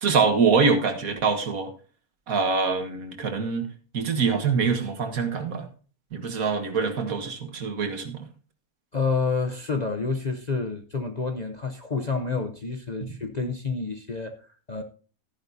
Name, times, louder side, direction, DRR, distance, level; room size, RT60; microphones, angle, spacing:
voice 1, 0.0-1.7 2.3-5.7 6.1-8.3, right 5 dB, 70° right, 1.9 m, -24 dB
voice 2, 8.9-14.8, left 4 dB, 40° left, 0.7 m, -29 dB
13.5 x 10.5 x 2.7 m
omnidirectional pair, 1.6 m